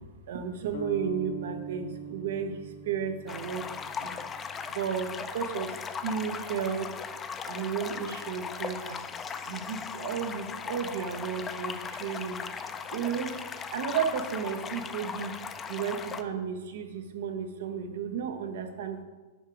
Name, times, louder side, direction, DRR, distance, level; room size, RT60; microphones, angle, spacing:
voice 1, 0.3-4.1 4.7-7.0 7.4-9.0 9.5-12.4 12.9-13.4 13.7-15.4 15.7-19.0, right 7 dB, 70° right, 7 dB, 0.8 m, -33 dB
sound 1, 0.7-4.7, right 3 dB, 70° left, 0.8 m, -41 dB
sound 2, 3.3-16.2, left 6 dB, 20° left, 0.4 m, -38 dB
6.4 x 4.6 x 5.1 m, 1.2 s
hypercardioid pair, 125°, 0 cm